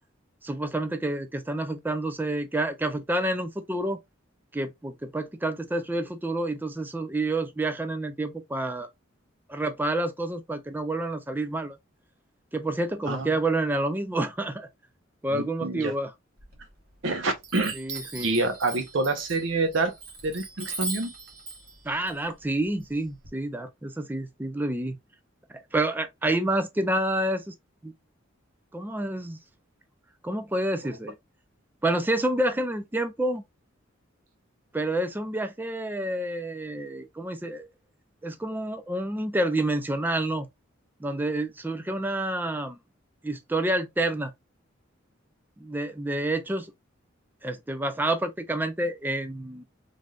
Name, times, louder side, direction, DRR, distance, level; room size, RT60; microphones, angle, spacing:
voice 1, 0.4-4.0 4.5-8.9 9.5-11.8 12.5-14.7 15.2-16.1 17.7-18.3 21.8-25.0 25.5-27.5 27.8-27.9 28.7-29.4 30.2-31.1 31.8-33.4 34.7-37.7 38.2-40.5 41.0-42.8 43.2-44.3 45.6-46.7 47.4-49.6, right 1 dB, 10° right, 0.4 m, -28 dB
voice 2, 15.3-15.9 17.0-17.8 18.2-19.9 20.2-21.1, right 2 dB, 70° right, 0.7 m, -27 dB
Chime, 16.4-17.1 17.4-23.3, right 3 dB, 55° right, 1.1 m, -39 dB
3.2 x 2.6 x 2.3 m
head